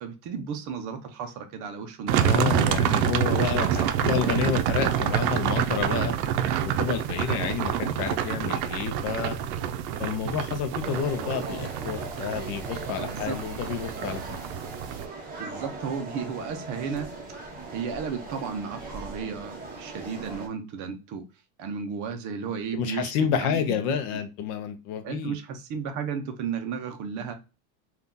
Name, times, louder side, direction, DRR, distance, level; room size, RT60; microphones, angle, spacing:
voice 1, 0.0-2.9 3.7-4.2 13.0-13.4 15.4-17.1 17.7-21.2 21.6-23.1 23.4-23.6 25.0-27.3, right 6 dB, 40° right, 0.6 m, -34 dB
sound 1, 2.1-15.1, right 10 dB, 90° right, 0.6 m, -27 dB
voice 2, 2.2-6.1 6.8-9.4 10.0-14.4 22.7-25.3, left 7 dB, 55° left, 0.6 m, -29 dB
sound 2, 10.8-20.5, right 2 dB, 20° right, 1.0 m, -39 dB
2.6 x 2.4 x 3.5 m
cardioid pair, 165°, 47 cm